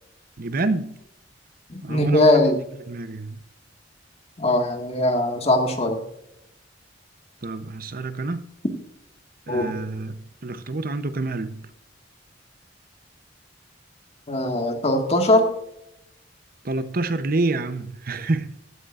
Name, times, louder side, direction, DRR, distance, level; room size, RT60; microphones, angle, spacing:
voice 1, 0.4-1.0 1.8-2.3 2.9-3.4 7.4-8.5 9.5-11.7 16.6-18.5, right 2 dB, 50° right, 0.8 m, -28 dB
voice 2, 1.7-2.6 4.4-6.0 9.5-9.7 14.3-15.5, left 1 dB, 35° left, 1.8 m, -20 dB
15.5 x 12.5 x 2.5 m
head